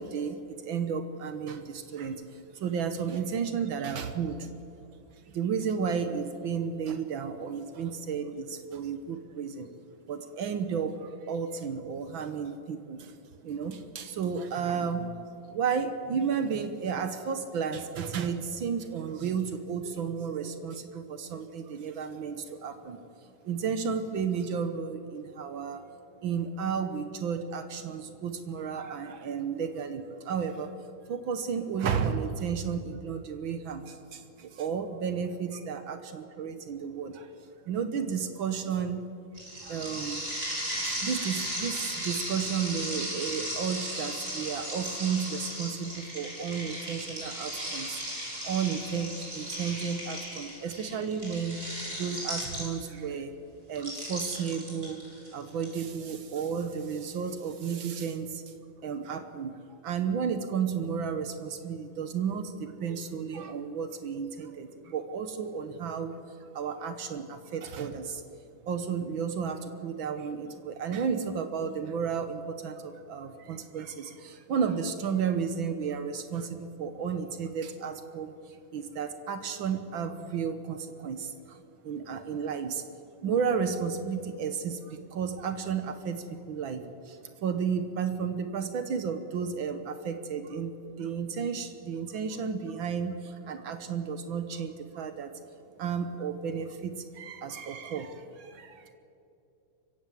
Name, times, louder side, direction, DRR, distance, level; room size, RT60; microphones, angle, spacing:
voice 1, 0.0-4.5 5.3-9.7 10.1-13.1 13.4-15.1 15.4-23.0 23.4-25.9 26.2-30.8 31.1-37.3 37.6-39.2 39.6-40.2 40.6-48.0 48.4-53.3 53.7-55.0 55.3-58.4 58.8-68.2 68.7-82.8 83.2-95.3 95.8-98.9, right 6 dB, 70° right, 9 dB, 1.2 m, -33 dB
sound 1, 39.4-53.0 53.8-55.6, equal, 25° right, 7.1 m, -36 dB
24.5 x 16.0 x 7.6 m, 2.7 s
omnidirectional pair, 3.6 m